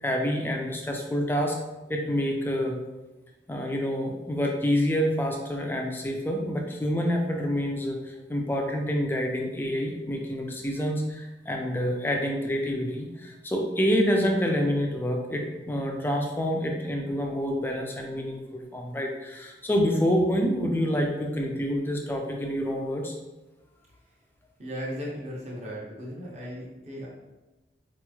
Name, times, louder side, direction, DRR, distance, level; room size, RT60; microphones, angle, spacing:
voice 1, 0.0-1.6 1.9-2.8 3.5-23.1, equal, 10° left, 1 dB, 0.4 m, -27 dB
voice 2, 24.6-27.1, equal, 40° right, -4 dB, 0.7 m, -36 dB
4.0 x 3.0 x 2.3 m, 1.1 s
head